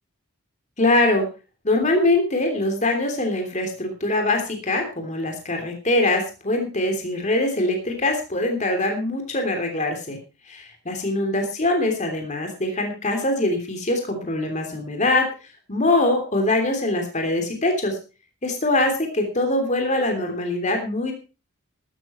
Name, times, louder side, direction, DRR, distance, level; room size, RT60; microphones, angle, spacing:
voice 1, 0.8-1.2 1.6-10.2 10.5-15.3 15.7-18.0 18.4-21.1, left 2 dB, 35° left, 4 dB, 3.2 m, -23 dB
13.0 x 12.5 x 4.4 m, 0.32 s
head